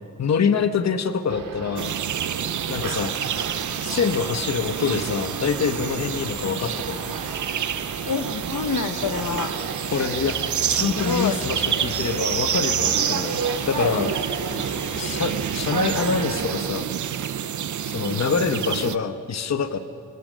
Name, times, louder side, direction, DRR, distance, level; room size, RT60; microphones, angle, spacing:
voice 1, 0.2-1.9 2.7-3.1 3.8-7.1 9.9-10.4 10.7-13.4 13.7-14.1 15.0-16.9 17.9-19.8, left 6 dB, 55° left, 9 dB, 1.0 m, -25 dB
sound 1, 1.3-16.7, right 4 dB, 85° right, 2.5 m, -33 dB
sound 2, 1.8-19.0, right 9 dB, 65° right, 0.7 m, -28 dB
sound 3, 2.6-16.4, right 2 dB, 20° right, 3.0 m, -40 dB
voice 2, 8.1-9.5 11.0-11.4 14.5-14.7 18.0-18.3, left 6 dB, 75° left, 9 dB, 1.1 m, -28 dB
27.5 x 24.5 x 6.3 m, 2.3 s
wide cardioid pair, 140°, 32 cm